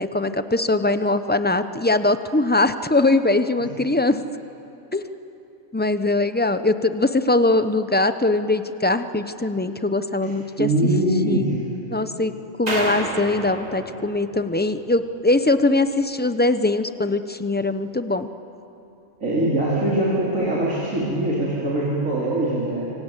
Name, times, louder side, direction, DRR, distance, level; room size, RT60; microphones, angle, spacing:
voice 1, 0.0-4.2 4.9-5.1 5.7-10.7 11.3-11.5 11.9-12.3 12.6-18.3, left 2 dB, 10° left, 10 dB, 0.6 m, -21 dB
voice 2, 10.6-11.6 19.2-22.9, right 1 dB, 85° right, -7 dB, 4.3 m, -22 dB
sound 1, 12.7-15.0, right 1 dB, 30° right, 2.9 m, -30 dB
26.5 x 25.0 x 8.3 m, 2.9 s
omnidirectional pair, 1.3 m